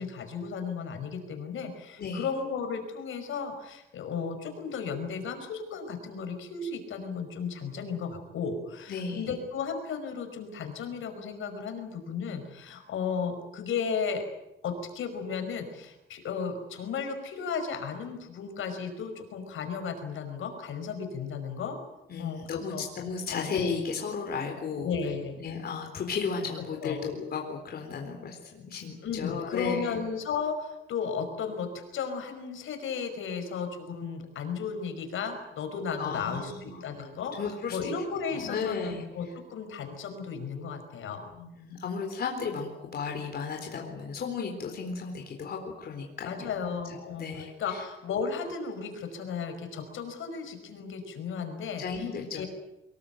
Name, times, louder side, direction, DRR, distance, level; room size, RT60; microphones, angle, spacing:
voice 1, 0.0-14.2 14.6-21.8 22.2-22.9 23.3-23.5 24.8-25.4 26.8-27.0 29.0-41.3 46.2-52.1 52.3-52.5, left 6 dB, 70° left, 6 dB, 5.4 m, -34 dB
voice 2, 8.9-9.3 22.1-24.9 25.4-29.9 36.0-36.8 37.3-37.9 38.3-39.0 41.3-47.8 51.8-52.5, left 5 dB, 50° left, 2 dB, 4.1 m, -34 dB
24.5 x 21.5 x 9.2 m, 0.91 s
wide cardioid pair, 175°, 21 cm